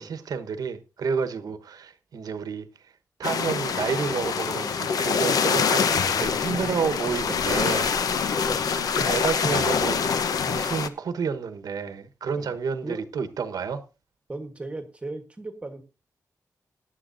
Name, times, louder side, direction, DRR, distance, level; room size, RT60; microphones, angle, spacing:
voice 1, 0.0-2.9 3.2-8.5 8.7-10.1 10.4-13.8, right 6 dB, 90° right, 1.2 m, -30 dB
sound 1, 3.2-10.9, left 6 dB, 80° left, 1.0 m, -25 dB
voice 2, 8.4-8.7 12.3-12.6 12.8-13.0 14.3-15.8, right 2 dB, 20° right, 1.2 m, -37 dB
17.5 x 10.5 x 2.6 m
wide cardioid pair, 155°, 6 cm